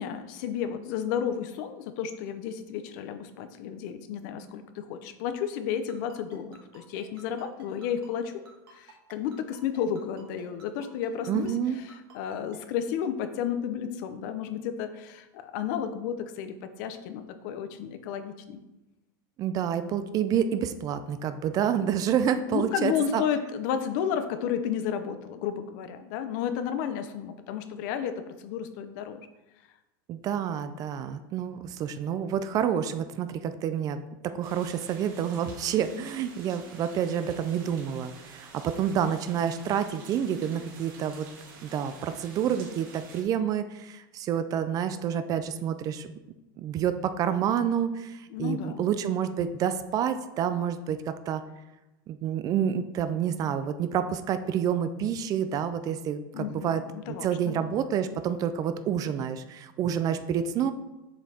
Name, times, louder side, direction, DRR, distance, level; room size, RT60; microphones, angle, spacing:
voice 1, 0.0-8.4 8.7-11.5 11.9-18.6 22.5-29.2 48.3-48.9 56.3-57.6, left 8 dB, 55° left, 10 dB, 0.6 m, -32 dB
Ringtone, 5.9-12.6, right 5 dB, 90° right, 1.9 m, -53 dB
voice 2, 11.3-11.8 19.4-23.2 30.1-41.3 41.6-46.1 46.6-51.4 52.1-56.8 57.2-60.7, right 8 dB, 30° right, 11 dB, 0.4 m, -28 dB
sound 1, 34.4-43.2, right 4 dB, 65° right, 1.7 m, -49 dB
7.2 x 5.0 x 2.8 m, 0.99 s
supercardioid pair, 135°, 12 cm